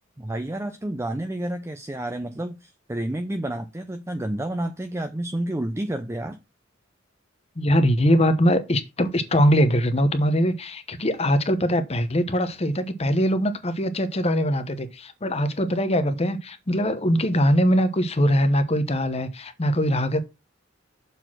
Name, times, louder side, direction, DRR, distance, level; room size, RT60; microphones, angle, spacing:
voice 1, 0.2-6.4, right 1 dB, 15° right, 0.6 m, -30 dB
voice 2, 7.6-20.2, equal, 35° left, 0.9 m, -22 dB
6.8 x 4.2 x 6.0 m
head